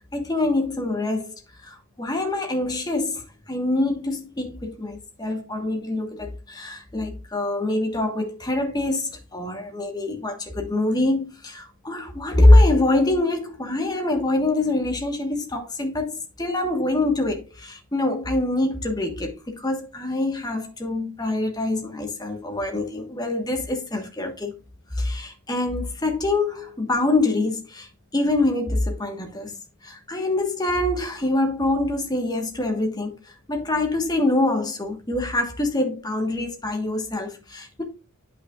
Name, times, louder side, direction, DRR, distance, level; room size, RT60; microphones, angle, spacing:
voice 1, 0.1-1.3 1.6-24.6 24.9-27.9 28.1-29.5 29.8-33.1 33.5-37.8, left 2 dB, 20° left, 1.5 m, -24 dB
9.7 x 5.8 x 2.5 m
head